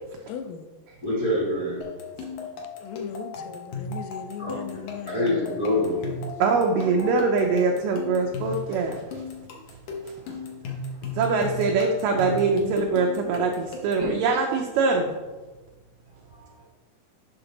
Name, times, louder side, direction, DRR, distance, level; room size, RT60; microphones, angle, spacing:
voice 1, 0.3-0.7 2.8-5.6, left 7 dB, 85° left, 8 dB, 1.8 m, -38 dB
voice 2, 1.0-1.8 4.4-4.5 5.1-6.2 14.0-14.1 16.3-16.5, left 1 dB, 35° left, -6 dB, 1.4 m, -26 dB
sound 1, 1.8-14.1, left 3 dB, 65° left, 2.1 m, -36 dB
voice 3, 6.4-9.2 11.1-15.2, right 4 dB, 80° right, 1 dB, 2.0 m, -23 dB
7.0 x 5.9 x 3.9 m, 1.2 s
omnidirectional pair, 4.3 m